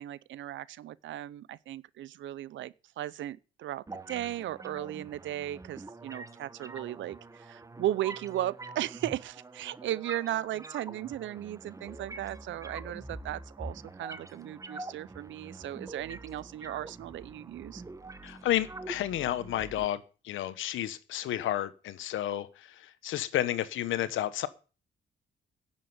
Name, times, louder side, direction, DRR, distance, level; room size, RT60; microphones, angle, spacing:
voice 1, 0.0-17.8, right 13 dB, 75° right, 0.7 m, -36 dB
sound 1, 3.9-19.9, right 2 dB, 15° right, 1.0 m, -45 dB
voice 2, 18.2-24.5, left 12 dB, 80° left, 1.2 m, -31 dB
10.0 x 7.5 x 9.5 m
cardioid pair, 90°, 20 cm